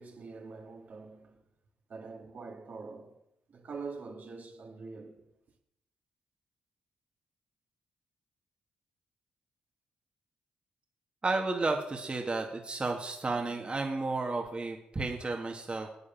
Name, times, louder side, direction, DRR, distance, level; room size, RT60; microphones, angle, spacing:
voice 1, 0.0-1.4 1.9-3.2 3.5-5.3, right 4 dB, 55° right, 2.3 m, -44 dB
voice 2, 11.2-15.9, right 3 dB, 30° right, 1.9 m, -32 dB
9.7 x 8.6 x 7.2 m
supercardioid pair, 60°, 3 cm